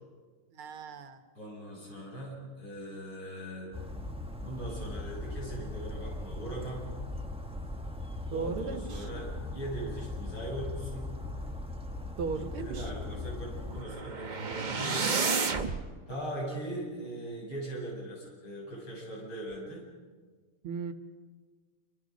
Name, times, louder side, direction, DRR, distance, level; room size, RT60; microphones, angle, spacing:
voice 1, 0.5-1.2 8.3-9.1 12.2-12.9 20.6-20.9, right 5 dB, 90° right, 8 dB, 2.3 m, -36 dB
voice 2, 1.4-3.7 4.4-6.9 8.3-11.1 12.4-15.1 16.1-19.9, right 1 dB, 75° left, -3 dB, 8.9 m, -40 dB
Bird vocalization bird call bird song, 3.7-13.8, left 2 dB, 5° right, 0.9 m, -39 dB
sound 1, 13.7-15.8, right 4 dB, 40° right, 0.7 m, -31 dB
28.5 x 25.0 x 5.3 m, 1.5 s
omnidirectional pair, 2.3 m